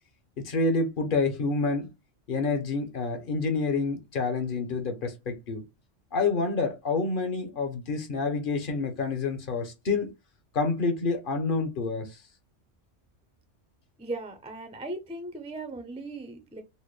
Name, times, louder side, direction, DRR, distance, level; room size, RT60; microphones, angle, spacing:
voice 1, 0.4-1.9 2.3-5.6 6.1-10.1 10.5-12.2, left 3 dB, 50° left, 0.8 m, -28 dB
voice 2, 14.0-16.6, right 2 dB, 10° right, 0.4 m, -37 dB
4.1 x 2.1 x 3.2 m
omnidirectional pair, 1.3 m